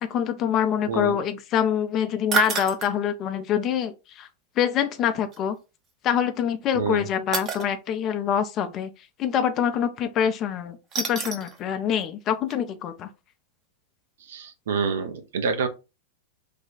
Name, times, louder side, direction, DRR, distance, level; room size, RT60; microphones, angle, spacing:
voice 1, 0.0-4.3 4.6-5.6 6.0-8.9 9.2-13.1, left 9 dB, 35° left, 0.5 m, -25 dB
voice 2, 0.9-1.2 6.7-7.0 14.3-15.7, right 5 dB, 60° right, 0.6 m, -27 dB
sound 1, 2.3-2.9 5.3-5.4 7.3-7.7 10.9-11.6 12.0-12.1 12.5-12.6, right 6 dB, 30° right, 0.7 m, -28 dB
3.3 x 2.3 x 3.8 m
figure-of-eight pair, 90°, 0 cm